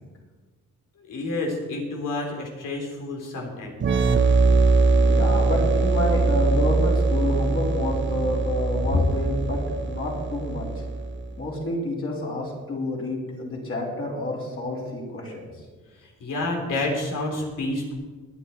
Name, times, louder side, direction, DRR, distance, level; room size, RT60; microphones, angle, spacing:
voice 1, 1.1-3.8 16.2-17.9, left 2 dB, 90° left, 0 dB, 3.4 m, -29 dB
sound 1, 3.8-11.3, right 3 dB, 40° right, 0.8 m, -22 dB
voice 2, 5.0-10.7 11.4-15.4, left 1 dB, 45° left, -4 dB, 4.5 m, -29 dB
19.0 x 10.5 x 4.3 m, 1.4 s
wide cardioid pair, 120°, 31 cm